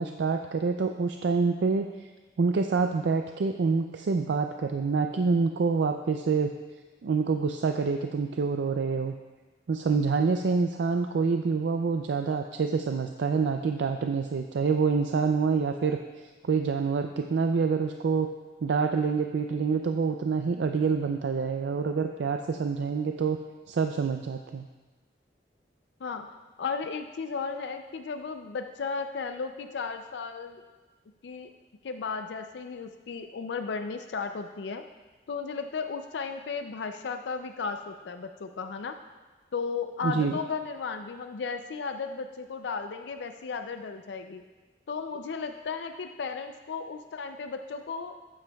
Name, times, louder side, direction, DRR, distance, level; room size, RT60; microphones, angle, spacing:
voice 1, 0.0-2.1 2.4-6.5 7.0-9.1 9.7-16.0 16.4-18.3 18.6-23.4 23.7-24.7 40.0-40.3, right 5 dB, 85° right, 6 dB, 0.4 m, -27 dB
voice 2, 26.0-30.6 31.2-31.5 31.8-34.8 35.3-39.0 39.5-44.4 44.9-48.2, left 5 dB, 85° left, 7 dB, 0.4 m, -35 dB
12.5 x 8.8 x 2.3 m, 1.3 s
head